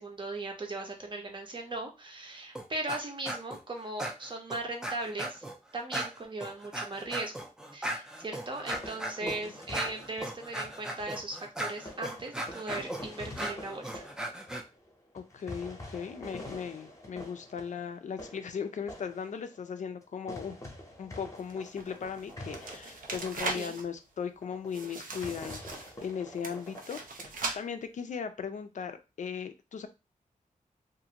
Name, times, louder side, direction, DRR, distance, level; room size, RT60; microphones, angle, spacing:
voice 1, 0.0-5.4 5.7-7.3 7.7-14.0 23.5-23.7, right 2 dB, 35° right, 2 dB, 0.7 m, -38 dB
sound 1, 2.6-3.0 3.3-3.6 4.0-5.6 5.9-14.6, right 1 dB, 5° right, 0.4 m, -37 dB
sound 2, 8.6-11.3 11.9-20.0 20.3-23.5 24.0-24.1 24.4-24.7 25.0-27.3, left 1 dB, 20° left, 0.7 m, -46 dB
voice 2, 9.2-9.6 15.1-20.6 21.0-29.9, left 6 dB, 60° left, 9 dB, 0.4 m, -38 dB
sound 3, 21.4-23.8 24.7-26.1 26.4-27.6, right 3 dB, 90° right, 0.6 m, -39 dB
2.5 x 2.5 x 2.8 m, 0.27 s
wide cardioid pair, 140°, 14 cm